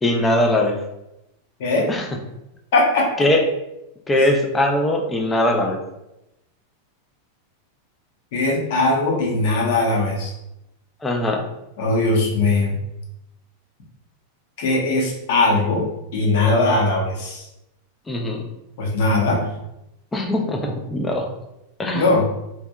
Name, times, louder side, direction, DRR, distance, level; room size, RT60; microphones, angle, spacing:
voice 1, 0.0-0.8 1.9-2.1 3.2-3.4 4.1-5.8 11.0-11.4 18.1-18.4 20.1-21.3 21.8-22.1, left 1 dB, 10° left, 2 dB, 0.3 m, -20 dB
voice 2, 2.7-3.1 4.1-4.3 8.3-10.3 11.8-12.8 14.6-15.8 16.1-17.4 18.8-19.4 21.9-22.2, left 2 dB, 60° left, -2 dB, 0.7 m, -20 dB
2.7 x 2.2 x 2.2 m, 0.89 s
supercardioid pair, 160°, 0 cm